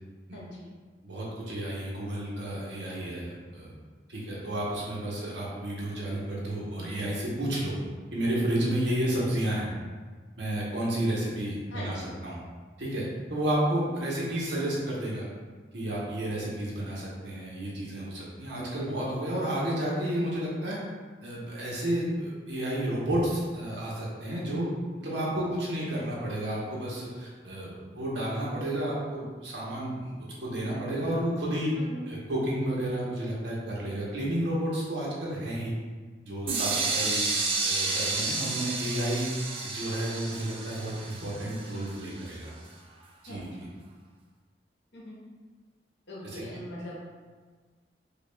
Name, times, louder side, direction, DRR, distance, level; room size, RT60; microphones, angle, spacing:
voice 1, 0.3-0.7 11.7-12.1 31.8-32.1 43.2-43.5 44.9-45.2 46.1-47.1, equal, 85° left, -5 dB, 1.0 m, -41 dB
voice 2, 1.0-3.7 4.1-7.8 8.1-9.7 10.4-12.4 12.8-15.2 15.7-20.8 21.2-24.7 25.0-31.7 32.1-35.7 36.2-37.3 37.6-39.3 39.6-42.5 43.2-43.5 46.2-46.4, right 1 dB, 80° right, -5 dB, 0.9 m, -31 dB
sound 1, 36.5-42.3, right 3 dB, 35° right, 0.4 m, -31 dB
5.1 x 2.3 x 2.2 m, 1.5 s
head